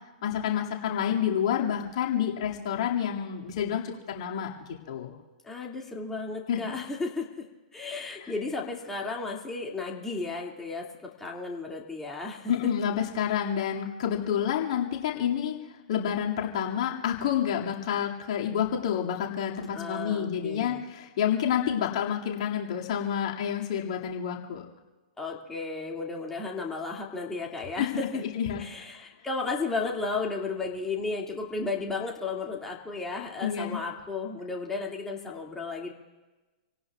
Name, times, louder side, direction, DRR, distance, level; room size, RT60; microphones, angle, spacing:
voice 1, 0.2-4.5 4.9-5.1 6.5-6.8 8.2-8.3 12.5-15.6 15.9-24.6 27.8-28.1 28.3-28.6 33.4-33.8, left 9 dB, 55° left, -1 dB, 2.3 m, -29 dB
voice 2, 5.4-7.5 7.7-12.5 19.7-20.8 25.2-28.2 28.6-35.9, left 3 dB, 10° left, -2 dB, 2.3 m, -34 dB
28.5 x 18.0 x 2.4 m, 1.2 s
figure-of-eight pair, 110°, 4 cm